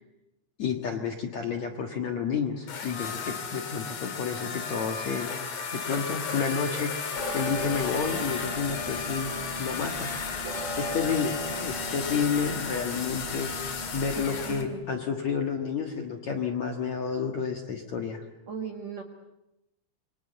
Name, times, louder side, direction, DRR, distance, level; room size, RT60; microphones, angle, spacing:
voice 1, 0.6-5.3 5.7-6.9 7.3-9.3 9.6-10.5 10.8-18.2, left 6 dB, 60° left, 3 dB, 1.9 m, -30 dB
sound 1, 2.7-14.7, left 5 dB, 45° left, 2.8 m, -34 dB
sound 2, 7.1-14.7, right 1 dB, 15° right, 3.5 m, -38 dB
voice 2, 14.2-14.8 18.5-19.0, right 6 dB, 60° right, 4 dB, 1.9 m, -37 dB
28.0 x 25.0 x 8.0 m, 0.90 s
omnidirectional pair, 5.6 m